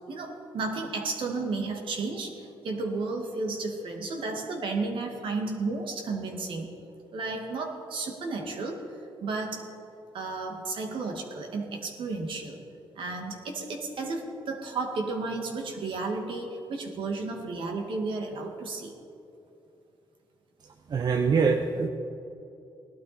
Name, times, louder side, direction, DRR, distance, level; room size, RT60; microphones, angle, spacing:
voice 1, 0.1-6.7 7.1-8.8 9.2-9.7 10.1-12.6 13.0-18.9, right 3 dB, 75° right, 3 dB, 2.1 m, -33 dB
voice 2, 20.9-21.9, right 5 dB, 50° right, 5 dB, 0.8 m, -24 dB
18.0 x 12.0 x 4.3 m, 2.7 s
cardioid pair, 85°, 9 cm